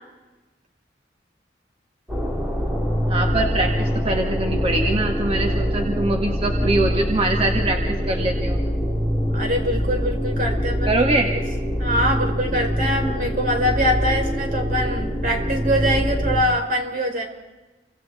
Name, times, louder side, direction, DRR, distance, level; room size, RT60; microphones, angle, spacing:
sound 1, 2.1-16.4, equal, 5° right, 3.3 m, -24 dB
voice 1, 3.1-8.6 10.9-11.3, right 2 dB, 35° right, 2 dB, 1.9 m, -23 dB
voice 2, 9.3-11.0 11.8-17.2, equal, 50° right, 3 dB, 4.9 m, -23 dB
29.5 x 25.5 x 4.3 m, 1.1 s
head